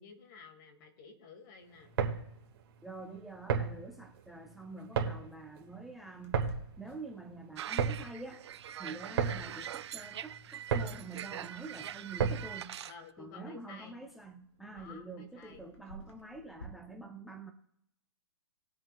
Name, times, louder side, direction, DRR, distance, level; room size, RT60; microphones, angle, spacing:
voice 1, 0.0-1.9 12.8-14.0 14.7-15.7, left 5 dB, 40° left, 5 dB, 2.0 m, -52 dB
sound 1, 1.8-12.6, right 6 dB, 55° right, 1.8 m, -35 dB
voice 2, 2.8-6.4 6.8-8.4 8.8-12.8 13.2-17.5, right 3 dB, ahead, 5 dB, 0.5 m, -46 dB
Clock, 6.2-16.6, equal, 90° left, 3.0 m, -55 dB
sound 2, 7.6-12.9, right 10 dB, 70° right, 0.4 m, -43 dB
20.5 x 7.5 x 2.3 m, 0.77 s
hypercardioid pair, 145°, 15 cm